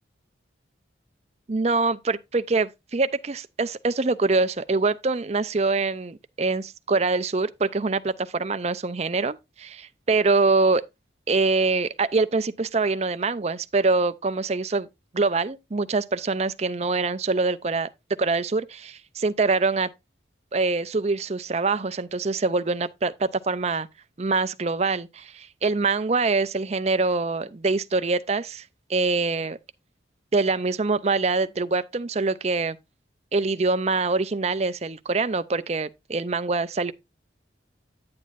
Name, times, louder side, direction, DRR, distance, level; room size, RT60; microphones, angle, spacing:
voice 1, 1.5-10.8 11.3-14.9 15.1-17.9 18.2-19.9 20.5-23.9 24.2-28.6 28.9-29.6 30.3-32.8 33.3-36.9, right 3 dB, 35° right, 0.5 m, -24 dB
9.6 x 9.1 x 2.5 m
head